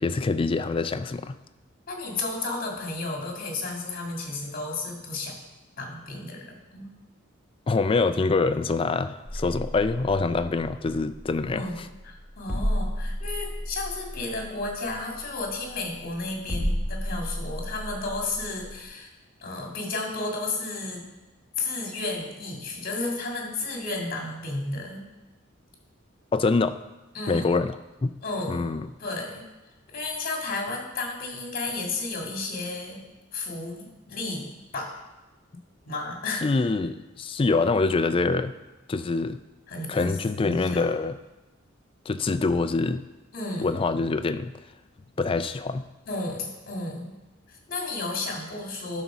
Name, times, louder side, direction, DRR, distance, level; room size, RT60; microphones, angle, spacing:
voice 1, 0.0-1.4 7.7-11.6 26.3-26.8 27.3-27.7 28.0-28.1 28.5-28.9 36.4-38.5 38.9-39.4 39.9-41.2 42.1-43.1 43.6-44.5 45.2-45.8, left 3 dB, 25° left, 12 dB, 0.3 m, -25 dB
voice 2, 1.9-5.3 5.8-6.9 11.5-11.8 12.0-19.1 19.4-21.1 21.6-25.1 27.1-27.5 28.2-28.7 29.0-29.4 29.9-33.0 33.3-35.0 35.9-36.4 39.7-40.9 43.3-43.7 46.1-47.2 47.5-49.0, left 2 dB, 45° left, 0 dB, 1.9 m, -33 dB
sound 1, 10.8-18.8, equal, 5° right, 1.8 m, -33 dB
11.0 x 4.1 x 6.0 m, 1.1 s
head